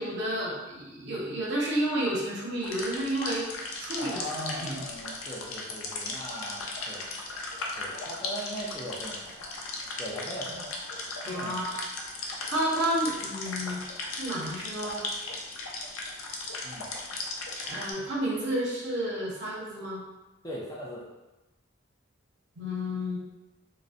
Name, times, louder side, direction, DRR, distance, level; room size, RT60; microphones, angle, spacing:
voice 1, 0.0-3.5 3.8-4.8 10.5-10.6 11.2-11.7 12.2-13.8 14.1-15.0 17.7-20.0 22.6-23.2, right 1 dB, 55° right, -4 dB, 0.6 m, -31 dB
sound 1, 2.6-17.9, left 2 dB, 80° left, 0.4 m, -37 dB
voice 2, 4.0-7.0 7.8-9.5 10.0-10.6 11.3-11.7 16.6-16.9 20.4-21.0, equal, 15° left, -5 dB, 0.4 m, -39 dB
2.5 x 2.0 x 2.4 m, 1.0 s
head